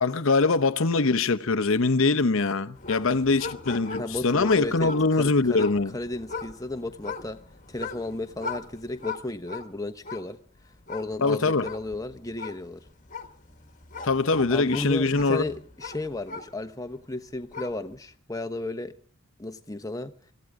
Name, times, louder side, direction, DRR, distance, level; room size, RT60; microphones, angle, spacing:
voice 1, 0.0-5.9 11.2-11.7 14.0-15.4, left 3 dB, 60° left, 0.8 m, -23 dB
sound 1, 2.7-16.9 17.3-18.0, left 4 dB, 35° left, 1.5 m, -40 dB
voice 2, 4.0-4.9 5.2-5.7 5.9-7.4 7.7-10.4 10.9-12.8 14.5-18.9 19.4-20.1, left 2 dB, 15° left, 1.0 m, -34 dB
25.0 x 16.0 x 3.7 m
head